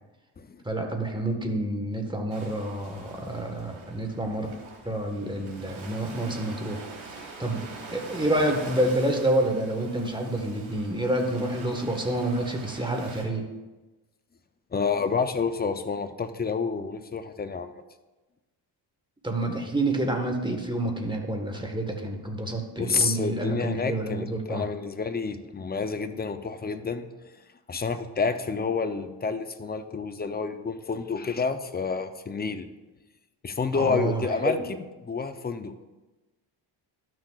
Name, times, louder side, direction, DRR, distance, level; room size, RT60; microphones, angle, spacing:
voice 1, 0.6-4.5 4.8-13.5 19.2-24.6 33.7-34.6, right 1 dB, 10° right, 3 dB, 1.4 m, -28 dB
Ocean, 2.3-13.2, right 3 dB, 90° right, 2.1 m, -44 dB
voice 2, 14.7-17.7 22.8-27.1 27.7-32.7 33.4-34.8 35.0-35.7, left 5 dB, 20° left, 9 dB, 0.6 m, -29 dB
13.0 x 6.2 x 2.4 m, 1.1 s
cardioid pair, 80°, 46 cm